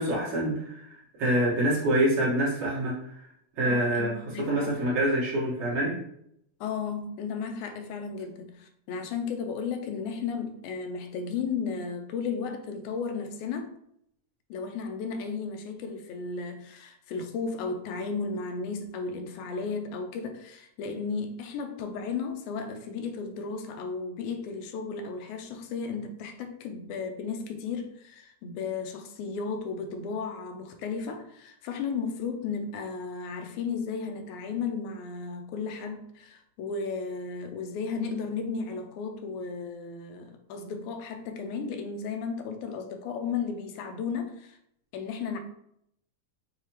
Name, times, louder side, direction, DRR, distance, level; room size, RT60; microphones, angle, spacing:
voice 1, 0.0-2.9 3.6-4.1 4.5-5.9, right 1 dB, 60° right, -6 dB, 2.5 m, -26 dB
voice 2, 3.6-4.7 6.6-13.7 14.5-44.6 44.9-45.4, left 5 dB, 90° left, 6 dB, 2.1 m, -34 dB
6.4 x 2.8 x 2.9 m, 0.74 s
omnidirectional pair, 3.4 m